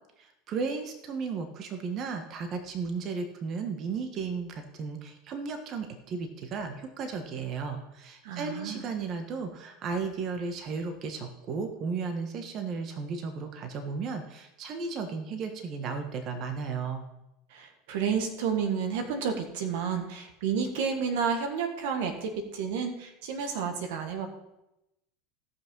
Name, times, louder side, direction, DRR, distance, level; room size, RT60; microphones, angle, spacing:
voice 1, 0.2-17.0, right 5 dB, 45° right, 6 dB, 1.5 m, -34 dB
voice 2, 8.2-8.8 17.5-24.3, right 6 dB, 75° right, 5 dB, 1.7 m, -31 dB
16.5 x 6.0 x 5.5 m, 0.90 s
supercardioid pair, 100°, 0 cm